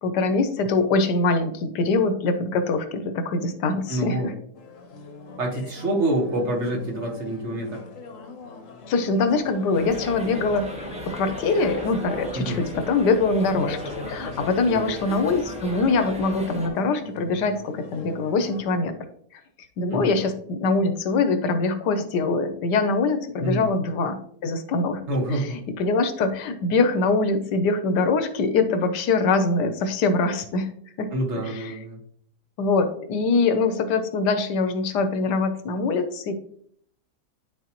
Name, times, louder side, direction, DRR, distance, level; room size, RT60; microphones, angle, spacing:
voice 1, 0.0-4.3 8.9-10.7 11.0-18.9 19.8-25.0 25.8-30.7 31.0-31.1 31.6-31.7 32.6-36.3, left 3 dB, 85° left, 9 dB, 1.4 m, -23 dB
voice 2, 3.9-4.3 5.4-7.8 12.3-12.6 14.7-15.0 19.9-20.2 23.4-23.7 25.1-25.6 31.1-32.0, right 1 dB, 45° right, 0 dB, 1.5 m, -27 dB
sound 1, 4.5-18.6, left 3 dB, 55° left, 1.2 m, -41 dB
sound 2, 9.7-16.7, equal, 5° right, 0.7 m, -36 dB
11.5 x 3.9 x 2.9 m, 0.65 s
omnidirectional pair, 1.8 m